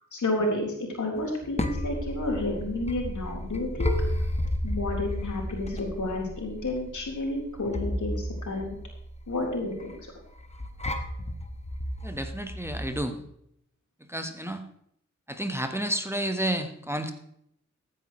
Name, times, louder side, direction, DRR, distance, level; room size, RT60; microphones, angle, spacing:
voice 1, 0.1-3.9 4.6-8.8 9.3-10.1, left 2 dB, 80° left, -1 dB, 3.9 m, -31 dB
sound 1, 1.2-13.1, left 1 dB, 20° left, 1.4 m, -33 dB
voice 2, 12.0-13.2 14.1-14.6 15.3-17.1, right 1 dB, 10° right, 6 dB, 1.3 m, -31 dB
14.5 x 9.8 x 3.1 m, 0.71 s
wide cardioid pair, 65°, 30 cm